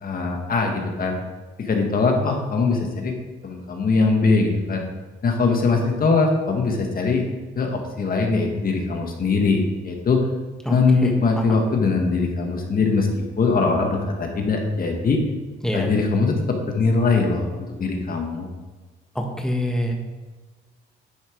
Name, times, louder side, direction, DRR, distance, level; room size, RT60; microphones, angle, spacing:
voice 1, 0.0-1.2 1.6-3.1 3.4-4.8 5.2-7.3 7.6-10.2 10.7-15.2 15.7-18.5, left 4 dB, 45° left, 2 dB, 1.7 m, -21 dB
voice 2, 11.0-11.6 15.6-15.9 19.2-19.9, left 1 dB, 5° left, 1 dB, 1.7 m, -26 dB
10.5 x 5.8 x 4.7 m, 1.3 s
cardioid pair, 90°, 20 cm